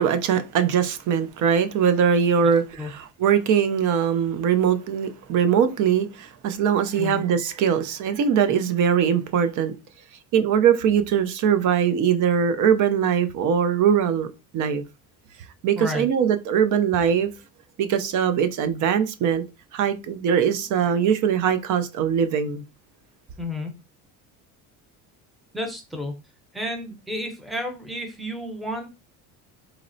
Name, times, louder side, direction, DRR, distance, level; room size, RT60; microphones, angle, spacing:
voice 1, 0.0-9.7 10.3-14.3 14.5-14.8 15.6-17.3 17.8-19.4 19.7-22.6, right 8 dB, 55° right, 0.5 m, -21 dB
voice 2, 2.4-2.9 7.0-7.2 15.8-16.1 23.4-23.8 25.5-26.1 26.5-28.9, left 1 dB, ahead, 0.6 m, -31 dB
4.0 x 2.0 x 2.6 m
cardioid pair, 105°, 37 cm